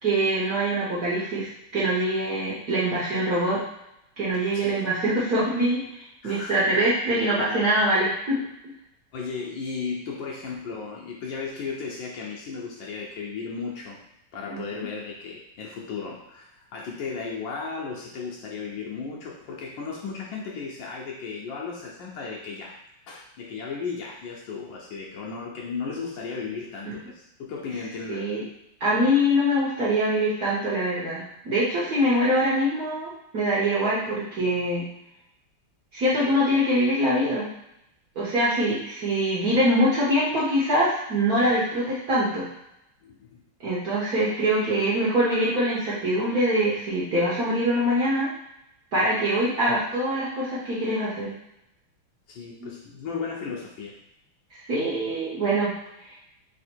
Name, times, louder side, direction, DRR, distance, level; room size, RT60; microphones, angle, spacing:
voice 1, 0.0-3.6 4.2-8.4 14.5-14.9 26.8-26.9 28.1-28.4 28.8-34.9 35.9-37.5 38.2-42.5 43.6-48.3 48.9-51.3 52.6-52.7 54.7-55.7 56.0-56.2, equal, 55° right, -9 dB, 1.2 m, -24 dB
voice 2, 6.2-6.6 9.1-14.0 14.3-22.7 23.1-28.3 43.0-43.4 52.3-54.0, left 5 dB, 70° left, -2 dB, 1.2 m, -35 dB
3.6 x 2.9 x 4.3 m, 0.84 s
omnidirectional pair, 2.4 m